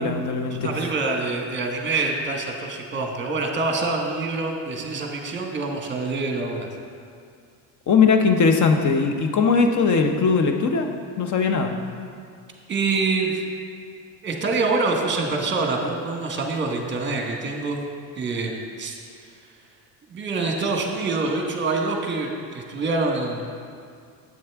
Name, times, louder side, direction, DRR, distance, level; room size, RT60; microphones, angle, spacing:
voice 1, 0.0-0.7 7.9-10.9 11.2-11.7, left 5 dB, 40° left, 5 dB, 0.8 m, -19 dB
voice 2, 0.6-6.7 12.7-13.4 14.2-17.8 18.2-19.0 20.1-22.3 22.5-23.5, right 3 dB, 25° right, 1 dB, 1.2 m, -25 dB
9.0 x 7.9 x 3.5 m, 2.3 s
cardioid pair, 125°, 48 cm